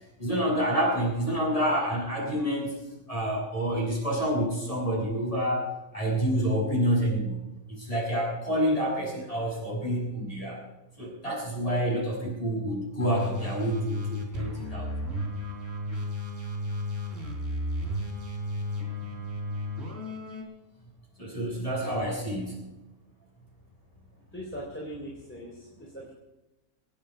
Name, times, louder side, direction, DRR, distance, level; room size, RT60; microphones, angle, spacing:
voice 1, 0.2-2.7 3.1-5.7 5.9-7.4 7.7-10.6 11.0-14.9 21.2-22.6, equal, 25° left, -3 dB, 6.6 m, -28 dB
sound 1, 13.0-20.4, left 1 dB, 45° right, 3.8 m, -33 dB
voice 2, 24.3-26.1, equal, 5° left, -4 dB, 3.7 m, -40 dB
25.5 x 9.1 x 5.2 m, 1.0 s
omnidirectional pair, 1.5 m